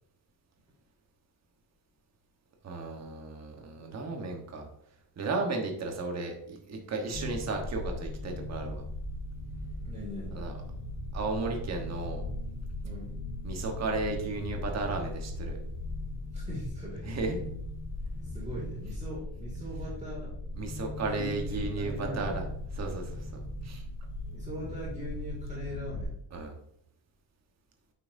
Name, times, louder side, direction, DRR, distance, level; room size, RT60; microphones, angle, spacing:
voice 1, 2.6-4.7 5.2-8.8 10.3-10.5 11.1-12.2 13.4-15.6 17.0-17.4 20.5-22.4 22.8-23.8 26.3-26.5, right 3 dB, 35° right, 2 dB, 1.2 m, -34 dB
sound 1, 7.1-26.0, left 1 dB, 40° left, 1.6 m, -38 dB
voice 2, 9.8-10.5 12.8-13.1 16.3-17.1 18.2-20.4 21.1-22.4 24.3-26.2, equal, 15° right, -5 dB, 2.2 m, -41 dB
8.9 x 5.8 x 2.6 m, 0.74 s
cardioid pair, 170°, 46 cm